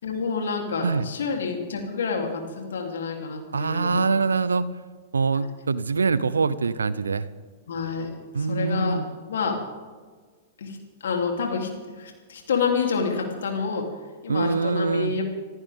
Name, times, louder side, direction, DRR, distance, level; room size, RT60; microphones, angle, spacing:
voice 1, 0.0-4.2 5.3-5.5 7.7-8.1 8.4-9.0 9.2-9.6 10.6-10.8 11.0-11.7 12.0-13.9 14.2-15.2, left 5 dB, 65° left, 2 dB, 3.3 m, -28 dB
voice 2, 3.5-4.6 5.1-7.3 8.3-9.0 14.3-15.1, right 4 dB, 80° right, 17 dB, 0.7 m, -24 dB
26.0 x 14.5 x 3.7 m, 1.5 s
figure-of-eight pair, 105°, 0 cm